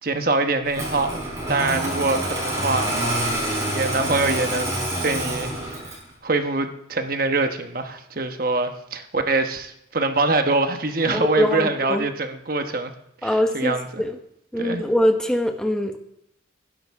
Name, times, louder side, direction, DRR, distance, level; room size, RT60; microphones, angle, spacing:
voice 1, 0.0-1.2 1.5-2.9 3.7-5.8 6.2-12.9 13.2-14.0 14.6-14.8, right 3 dB, 45° right, 6 dB, 1.1 m, -24 dB
Engine starting, 0.7-6.1, right 1 dB, 15° right, 4.6 m, -27 dB
voice 2, 11.1-12.0 13.2-14.2 14.5-16.0, left 1 dB, 5° left, 4 dB, 1.1 m, -23 dB
19.5 x 10.5 x 3.6 m, 0.78 s
head